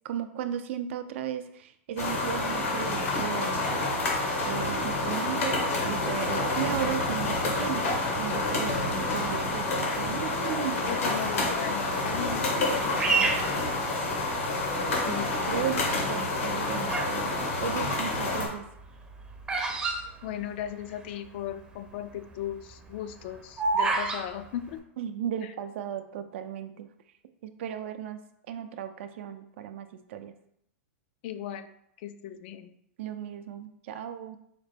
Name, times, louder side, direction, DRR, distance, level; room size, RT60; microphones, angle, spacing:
voice 1, 0.0-3.5 4.4-7.8 8.1-10.8 13.1-13.6 15.0-15.8 16.1-17.3 17.6-18.6 25.0-26.9 27.4-28.2 28.5-30.3 33.0-34.4, right 10 dB, 65° right, 9 dB, 0.4 m, -35 dB
sound 1, 2.0-18.5, left 2 dB, 80° left, 1.2 m, -28 dB
voice 2, 10.8-13.0 14.9-15.7 16.0-16.3 20.2-24.8 25.4-25.5 31.2-31.7 32.0-32.7, left 10 dB, 55° left, 10 dB, 0.4 m, -37 dB
Bird vocalization bird call bird song, 13.0-14.5 15.1-15.6 16.3-17.2 17.5-21.0 21.3-21.4 21.5-21.9 22.3-24.2, right 3 dB, 15° right, 0.6 m, -29 dB
4.8 x 2.1 x 3.3 m, 0.74 s
hypercardioid pair, 130°, 7 cm